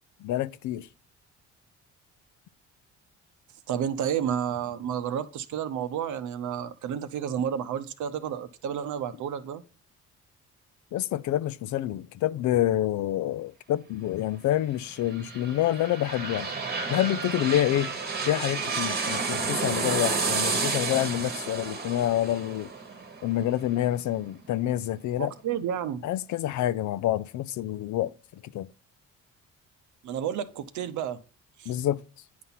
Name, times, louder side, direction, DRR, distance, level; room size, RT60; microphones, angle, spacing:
voice 1, 0.2-0.9 10.9-16.5 16.9-17.9 18.2-22.7 23.2-25.3 26.0-28.1 28.4-28.7 31.7-32.0, left 13 dB, 75° left, 0.5 m, -27 dB
voice 2, 3.7-9.6 25.2-26.0 30.0-31.2 31.6-31.7, right 9 dB, 75° right, 0.7 m, -31 dB
sound 1, 14.9-24.5 24.9-25.0, right 4 dB, 30° right, 1.2 m, -31 dB
9.5 x 4.1 x 5.8 m
cardioid pair, 90°, 30 cm